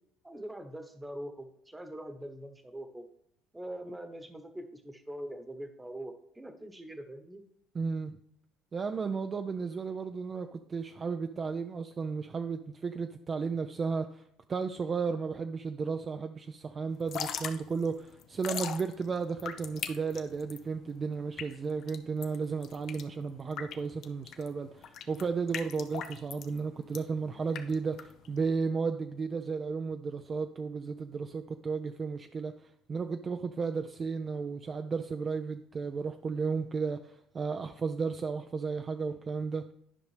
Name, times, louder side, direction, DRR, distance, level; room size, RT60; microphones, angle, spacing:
voice 1, 0.2-3.1 3.5-7.4, right 1 dB, 10° right, 7 dB, 1.1 m, -43 dB
voice 2, 7.7-8.1 8.7-14.2 14.5-39.7, right 5 dB, 35° right, 7 dB, 0.4 m, -34 dB
Drip / Trickle dribble, 16.9-28.5, left 8 dB, 60° left, 0.7 m, -41 dB
11.0 x 5.2 x 3.3 m, 0.72 s
supercardioid pair, 85°, 0 cm